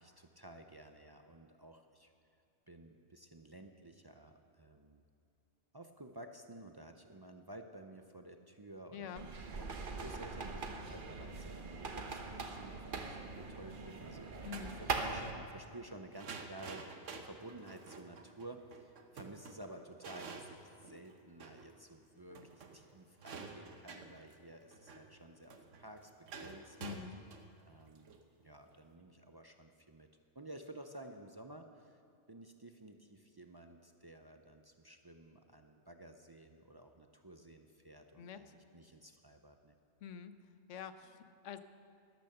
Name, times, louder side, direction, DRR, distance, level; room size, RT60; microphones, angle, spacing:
voice 1, 0.0-2.1 2.7-5.0 5.7-14.5 14.8-27.1 27.7-30.1 30.3-32.0 32.3-39.8, right 1 dB, 30° right, 5 dB, 0.4 m, -53 dB
voice 2, 8.9-9.3 14.4-14.8 26.8-27.2 38.2-38.5 40.0-40.3 40.7-41.6, left 8 dB, 85° left, 11 dB, 1.0 m, -46 dB
sound 1, 9.2-15.3, right 3 dB, 50° right, 1.1 m, -42 dB
sound 2, 14.3-14.8 16.1-21.7 22.0-22.1 22.3-28.8, right 4 dB, 90° right, 1.4 m, -50 dB
12.0 x 12.0 x 6.7 m, 2.4 s
omnidirectional pair, 1.2 m